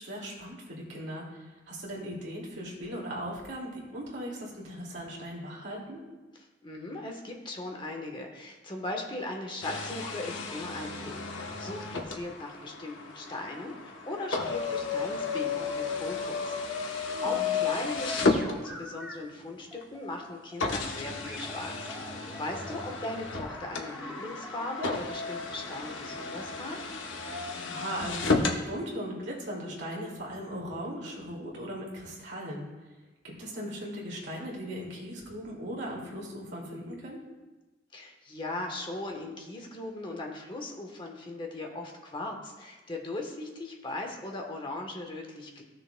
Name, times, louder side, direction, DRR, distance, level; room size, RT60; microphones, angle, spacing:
voice 1, 0.0-6.0 17.1-17.5 27.5-32.7 33.2-37.2, equal, 70° right, -3 dB, 2.4 m, -38 dB
voice 2, 6.6-16.6 16.9-26.8 37.9-45.6, left 2 dB, 25° left, 2 dB, 1.1 m, -38 dB
sound 1, 9.6-19.1 19.8-19.9 20.6-28.6, left 4 dB, 90° left, 1.0 m, -33 dB
sound 2, 18.1-19.1 19.7-20.9 21.2-24.8, equal, ahead, 0.8 m, -46 dB
15.0 x 6.7 x 2.2 m, 1.2 s
head